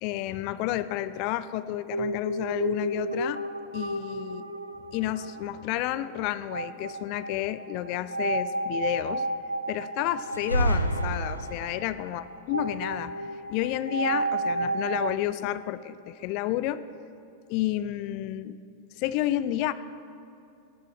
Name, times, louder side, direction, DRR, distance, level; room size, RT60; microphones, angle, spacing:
voice 1, 0.0-3.4 3.7-4.6 4.9-9.2 9.7-16.8 17.5-18.6 19.0-19.7, left 14 dB, 45° left, 14 dB, 0.5 m, -30 dB
sound 1, 1.9-15.2, right 2 dB, 85° right, 0.5 m, -33 dB
sound 2, 10.3-11.9, right 1 dB, 90° left, 0.7 m, -28 dB
19.0 x 13.0 x 3.3 m, 2.7 s
figure-of-eight pair, 90°, 0 cm